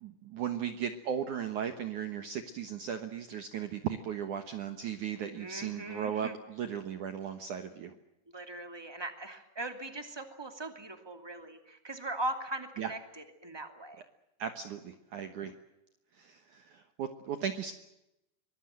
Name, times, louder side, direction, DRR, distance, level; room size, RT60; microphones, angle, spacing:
voice 1, 0.0-7.9 12.8-12.9 14.4-15.5 16.1-17.7, right 8 dB, 65° right, 8 dB, 2.1 m, -36 dB
voice 2, 5.3-6.3 8.3-14.0, right 2 dB, 10° right, 6 dB, 1.3 m, -40 dB
24.5 x 21.0 x 7.8 m, 0.88 s
omnidirectional pair, 5.1 m